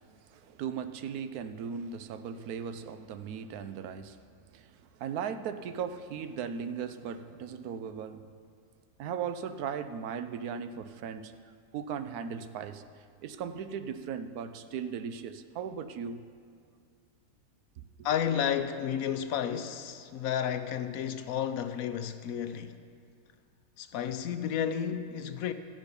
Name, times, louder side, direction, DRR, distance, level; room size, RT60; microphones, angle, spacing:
voice 1, 0.3-4.2 4.5-8.3 9.0-11.3 11.7-12.8 13.2-16.2, right 7 dB, 80° right, 1.1 m, -37 dB
voice 2, 18.0-22.8 23.8-25.5, left 9 dB, 70° left, 1.0 m, -32 dB
14.5 x 9.1 x 5.3 m
omnidirectional pair, 1.6 m